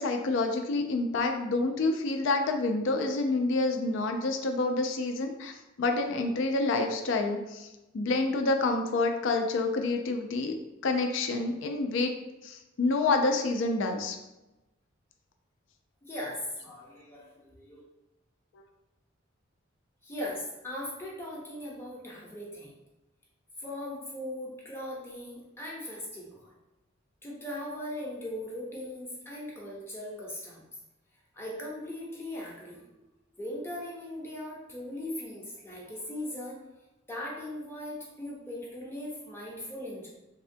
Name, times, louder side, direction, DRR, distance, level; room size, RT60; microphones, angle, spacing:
voice 1, 0.0-5.5 5.8-7.7 7.9-10.6 10.8-12.1 12.4-14.2, left 3 dB, 65° left, 4 dB, 0.4 m, -28 dB
voice 2, 16.0-17.8 20.0-22.7 23.6-26.4 27.2-30.6 31.3-32.9 33.3-36.6 37.1-40.1, left 1 dB, 10° left, -4 dB, 0.6 m, -39 dB
3.5 x 2.1 x 2.6 m, 0.99 s
head